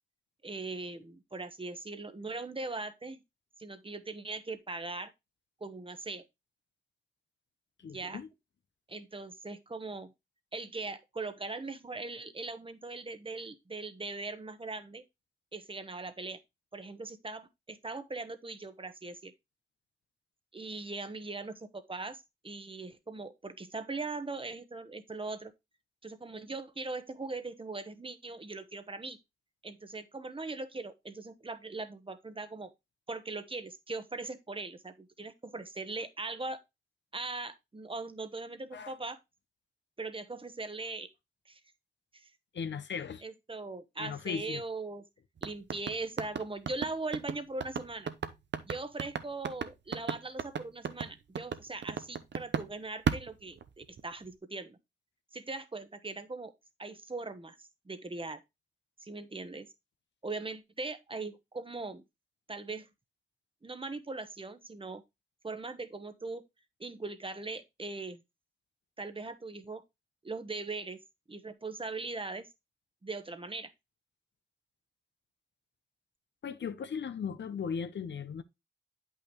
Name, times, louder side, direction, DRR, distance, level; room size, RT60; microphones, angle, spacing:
voice 1, 0.4-3.2 3.6-5.1 5.6-6.2 7.8-8.2 8.9-10.1 10.5-15.0 15.5-16.4 16.7-19.3 20.5-25.5 26.0-29.2 29.6-32.7 33.1-36.6 37.1-39.2 40.0-41.1 41.5-41.6 42.1-42.3 43.2-45.0 45.4-48.1 48.6-54.8 55.3-56.5 56.8-57.6 57.8-58.4 59.0-59.7 60.2-62.0 62.5-62.9 63.6-65.0 65.4-66.4 66.8-68.2 69.0-69.8 70.2-71.0 71.3-72.5 73.0-73.7, right 3 dB, 30° right, 1.0 m, -40 dB
voice 2, 7.8-8.3 38.7-38.9 42.5-43.2 44.0-44.6 76.4-78.4, left 6 dB, 80° left, 0.7 m, -37 dB
sound 1, 45.4-52.7 53.1-54.1, right 7 dB, 75° right, 0.8 m, -34 dB
8.6 x 5.6 x 3.1 m
wide cardioid pair, 75°, 18 cm